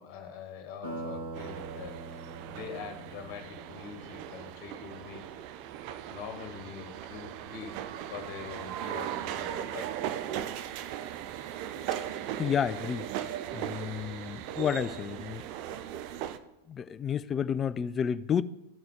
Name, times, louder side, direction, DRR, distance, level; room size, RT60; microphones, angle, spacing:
voice 1, 0.0-5.2 6.1-7.8 8.1-10.0 13.4-13.5 14.0-14.3, left 6 dB, 40° left, 1.7 m, -44 dB
sound 1, 0.8-5.1, right 2 dB, 75° right, 2.8 m, -43 dB
sound 2, 1.3-16.4, right 11 dB, 45° right, 0.5 m, -38 dB
voice 2, 12.4-13.1 13.5-15.4 16.7-18.4, left 8 dB, 25° left, 0.4 m, -30 dB
14.0 x 5.6 x 3.7 m
figure-of-eight pair, 90°, 0 cm